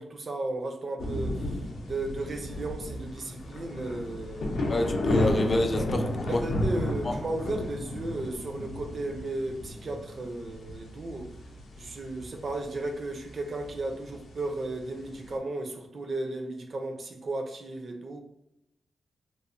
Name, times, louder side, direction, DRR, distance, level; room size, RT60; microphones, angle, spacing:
voice 1, 0.0-4.8 6.2-11.4 11.8-18.2, right 2 dB, 45° right, 4 dB, 0.5 m, -35 dB
sound 1, 1.0-15.3, left 1 dB, 80° left, 0.5 m, -33 dB
voice 2, 4.7-6.3 7.1-7.2, left 2 dB, 30° left, 5 dB, 0.4 m, -28 dB
2.9 x 2.1 x 2.5 m, 0.85 s
wide cardioid pair, 130°, 0 cm